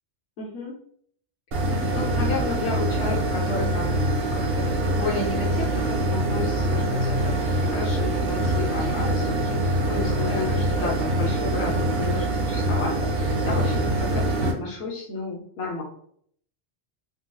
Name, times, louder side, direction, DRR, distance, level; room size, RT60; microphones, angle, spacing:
voice 1, 0.4-0.8 1.9-4.1 4.3-15.8, left 3 dB, 90° left, -3 dB, 1.0 m, -32 dB
sound 1, 1.5-14.5, right 1 dB, 70° right, 0.9 m, -24 dB
3.7 x 2.7 x 2.3 m, 0.63 s
omnidirectional pair, 1.0 m